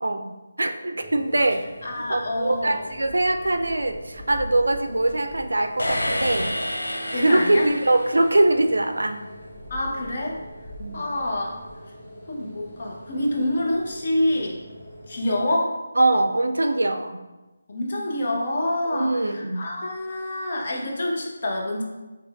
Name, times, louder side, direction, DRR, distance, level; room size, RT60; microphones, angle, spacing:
voice 1, 0.0-1.6 2.1-6.6 7.1-9.2 10.8-11.0 16.0-17.2 18.9-19.6, right 2 dB, 80° right, 7 dB, 0.3 m, -22 dB
sound 1, 1.0-15.5, equal, ahead, 1.2 m, -42 dB
voice 2, 1.8-2.8 7.1-7.7 9.7-10.4 10.9-11.6 12.3-14.6 15.1-15.7 17.7-21.8, left 1 dB, 45° left, -1 dB, 0.8 m, -27 dB
sound 2, 5.8-8.6, left 1 dB, 85° left, 0.6 m, -29 dB
4.4 x 3.1 x 2.3 m, 1.1 s
figure-of-eight pair, 160°, 0 cm